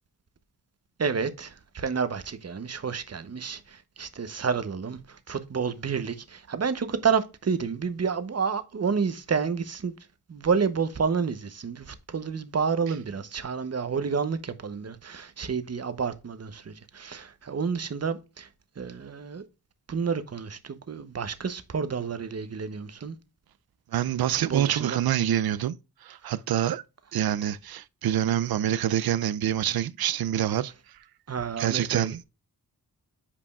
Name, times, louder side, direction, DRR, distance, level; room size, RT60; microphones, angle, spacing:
voice 1, 1.0-9.9 10.3-18.5 18.8-19.4 19.9-23.2 24.5-25.0 26.2-26.3 31.3-32.2, right 5 dB, 40° right, 0.9 m, -30 dB
voice 2, 23.9-25.8 26.0-26.8 27.1-30.7 31.6-32.2, right 11 dB, 75° right, 0.5 m, -26 dB
8.4 x 5.0 x 2.3 m
cardioid pair, 70°, 37 cm